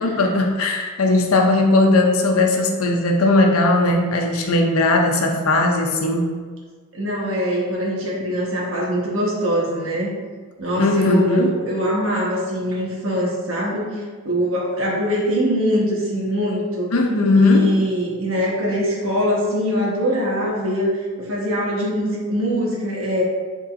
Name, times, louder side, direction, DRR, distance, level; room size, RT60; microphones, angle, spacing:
voice 1, 0.0-6.3 10.8-11.5 16.9-17.9, left 2 dB, 90° left, 2 dB, 0.7 m, -18 dB
voice 2, 6.9-10.1 10.6-16.9 17.4-23.2, equal, 75° right, -4 dB, 1.3 m, -23 dB
5.6 x 3.7 x 2.6 m, 1.5 s
head